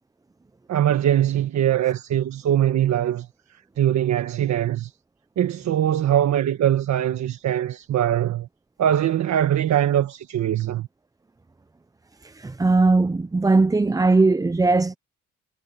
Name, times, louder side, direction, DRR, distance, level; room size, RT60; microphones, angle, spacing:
voice 1, 0.7-3.3 3.8-4.9 5.4-8.5 8.8-10.9, right 11 dB, 65° right, 1.4 m, -22 dB
voice 2, 12.2-14.9, right 3 dB, 10° right, 0.5 m, -19 dB
cardioid pair, 90°, 30 cm